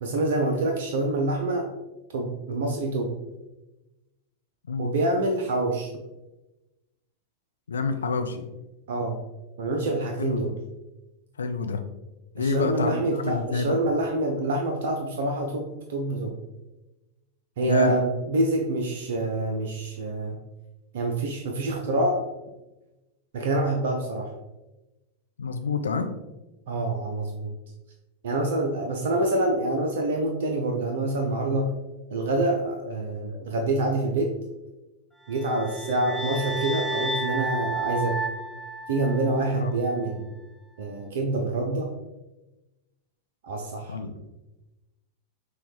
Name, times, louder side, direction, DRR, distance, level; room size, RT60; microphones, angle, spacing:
voice 1, 0.0-1.7 2.1-3.1 4.8-5.9 8.9-9.2 9.6-10.5 12.4-16.4 17.6-20.4 20.9-22.2 23.3-24.3 26.7-27.5 28.2-31.7 32.1-34.3 35.3-38.2 38.9-40.3 40.8-41.9 43.4-44.0, right 2 dB, 55° right, 2 dB, 0.5 m, -26 dB
voice 2, 7.7-8.5 10.2-10.5 11.4-11.8 12.3-13.8 17.6-17.9 25.4-26.1 39.5-39.7 43.9-44.1, left 4 dB, 70° left, 7 dB, 0.4 m, -28 dB
sound 1, 35.3-39.6, right 1 dB, ahead, 0.3 m, -31 dB
6.2 x 2.3 x 3.1 m, 1.0 s
figure-of-eight pair, 90°, 0 cm